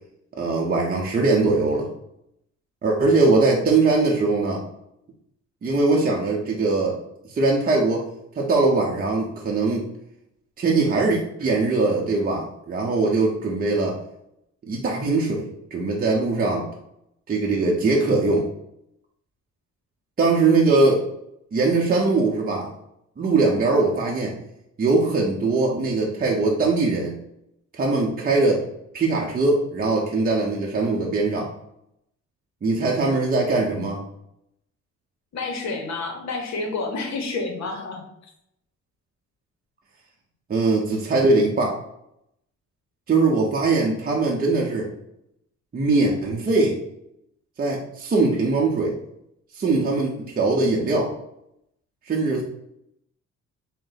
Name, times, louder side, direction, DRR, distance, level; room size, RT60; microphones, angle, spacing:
voice 1, 0.4-1.9 2.8-4.6 5.6-7.0 7.3-8.1 8.4-9.8 10.6-14.0 14.7-16.6 17.3-18.4 20.2-21.0 21.5-22.7 23.2-24.3 24.8-27.1 27.7-28.6 28.9-31.5 32.6-34.0 40.5-41.8 43.1-44.9 45.7-46.8 47.6-48.9 49.5-51.1 52.1-52.4, right 3 dB, 30° right, -2 dB, 0.6 m, -21 dB
voice 2, 3.3-3.8 35.3-38.1, left 3 dB, 65° left, 2 dB, 0.9 m, -30 dB
3.7 x 2.1 x 3.9 m, 0.79 s
cardioid pair, 90°, 30 cm